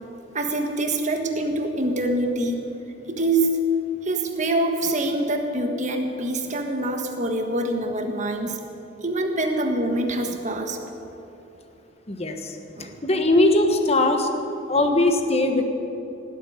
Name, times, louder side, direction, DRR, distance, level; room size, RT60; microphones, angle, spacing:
voice 1, 0.3-2.7 3.1-3.6 4.0-8.6 9.0-10.8 12.7-13.0, right 2 dB, 40° right, 4 dB, 1.5 m, -25 dB
voice 2, 12.1-12.5 13.0-14.3 14.7-15.7, left 2 dB, 30° left, 5 dB, 1.2 m, -20 dB
17.5 x 8.2 x 9.4 m, 3.0 s
head